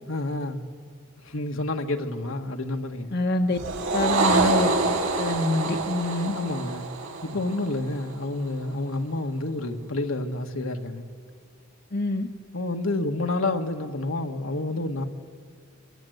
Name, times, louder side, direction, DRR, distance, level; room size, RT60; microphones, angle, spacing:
voice 1, 0.1-0.6 1.2-3.1 6.3-6.9 7.2-11.0 12.5-15.0, left 2 dB, 75° left, 1.6 m, -29 dB
voice 2, 3.1-3.6 3.9-6.3 11.9-12.3, left 2 dB, 50° left, 1.2 m, -26 dB
sound 1, 3.5-8.1, right 3 dB, 70° right, 3.4 m, -26 dB
26.5 x 22.5 x 8.0 m
head